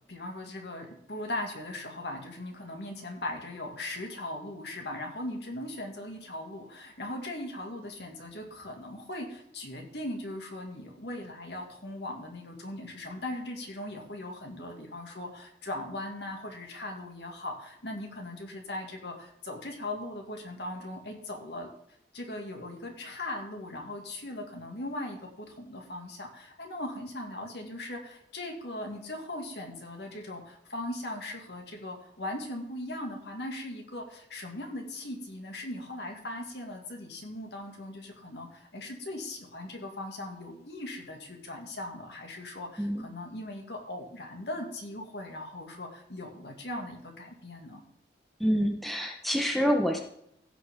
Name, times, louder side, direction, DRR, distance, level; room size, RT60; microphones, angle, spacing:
voice 1, 0.1-21.7 22.1-47.8, left 1 dB, 70° left, 1 dB, 2.4 m, -39 dB
voice 2, 48.4-50.0, equal, ahead, 1 dB, 1.2 m, -27 dB
16.5 x 6.1 x 3.8 m, 0.73 s
head